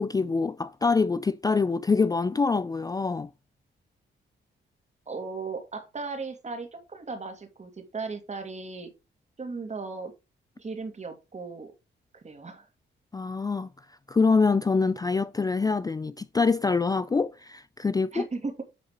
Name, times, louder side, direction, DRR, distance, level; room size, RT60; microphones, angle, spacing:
voice 1, 0.0-3.3 13.1-13.7 14.1-18.3, left 4 dB, 20° left, 0.4 m, -25 dB
voice 2, 5.1-8.9 9.4-10.1 10.6-11.7 12.2-12.7 18.1-18.6, right 4 dB, 35° right, 2.5 m, -36 dB
10.0 x 4.0 x 5.1 m
cardioid pair, 80°, 20 cm